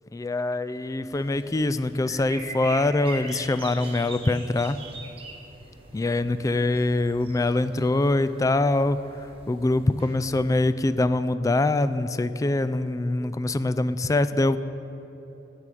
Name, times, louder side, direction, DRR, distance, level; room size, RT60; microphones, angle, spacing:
voice 1, 0.1-4.8 5.9-9.0 9.5-14.6, left 2 dB, 20° left, 13 dB, 0.3 m, -24 dB
sound 1, 1.1-10.7, right 3 dB, 30° right, 1.3 m, -43 dB
14.0 x 4.9 x 9.1 m, 3.0 s
head